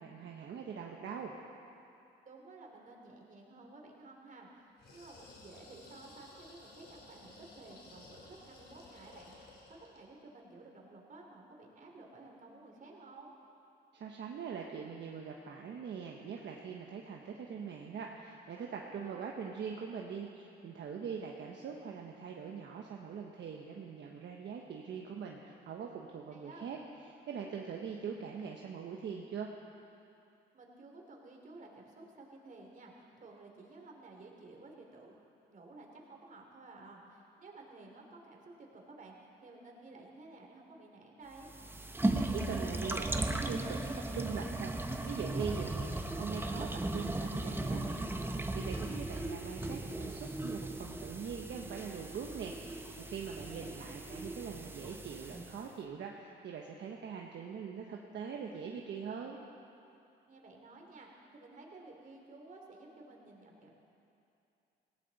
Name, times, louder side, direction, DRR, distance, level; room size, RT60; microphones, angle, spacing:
voice 1, 0.0-1.3 13.9-26.8 27.0-29.5 42.1-44.7 45.1-45.9 46.2-59.4, right 6 dB, 65° right, 0 dB, 1.2 m, -42 dB
voice 2, 2.2-13.3 18.8-19.3 26.3-26.8 30.5-41.5 53.2-53.8 60.3-63.7, right 2 dB, 40° right, 0 dB, 3.1 m, -54 dB
sound 1, 4.8-10.1, left 2 dB, 60° left, 3.5 m, -56 dB
sound 2, 41.4-55.7, right 2 dB, 10° right, 1.0 m, -37 dB
18.5 x 16.5 x 4.2 m, 2.7 s
cardioid pair, 90°, 20 cm